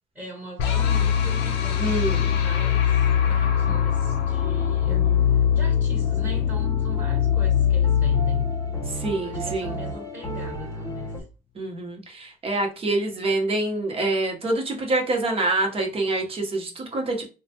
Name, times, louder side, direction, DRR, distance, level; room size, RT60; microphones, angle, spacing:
voice 1, 0.1-8.5 9.2-11.2, right 1 dB, 5° right, 1.3 m, -40 dB
sound 1, 0.6-9.7, left 9 dB, 85° left, 0.7 m, -22 dB
voice 2, 1.8-2.3 4.9-5.3 8.9-9.8 11.5-17.2, right 2 dB, 35° right, 1.1 m, -26 dB
sound 2, 6.0-11.2, right 1 dB, 15° left, 0.9 m, -35 dB
3.6 x 2.3 x 2.9 m
cardioid pair, 110°, 17 cm